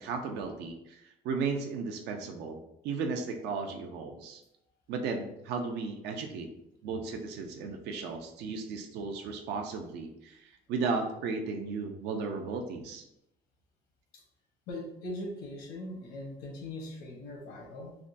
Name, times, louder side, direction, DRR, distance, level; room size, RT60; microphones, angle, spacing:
voice 1, 0.0-4.4 4.9-6.5 6.8-10.4 10.7-13.1, right 4 dB, 85° right, 4 dB, 0.5 m, -35 dB
voice 2, 14.7-18.0, left 1 dB, 80° left, 0 dB, 0.9 m, -40 dB
3.5 x 2.2 x 2.5 m, 0.81 s
cardioid pair, 110°, 17 cm